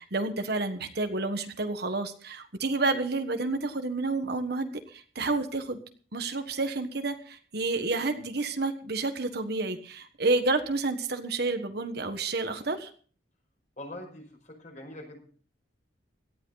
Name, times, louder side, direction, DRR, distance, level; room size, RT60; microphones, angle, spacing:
voice 1, 0.0-5.8 6.1-12.9, right 3 dB, 55° right, 7 dB, 1.4 m, -30 dB
voice 2, 13.8-15.2, left 1 dB, 40° left, 3 dB, 5.6 m, -43 dB
17.5 x 13.0 x 4.0 m, 0.43 s
head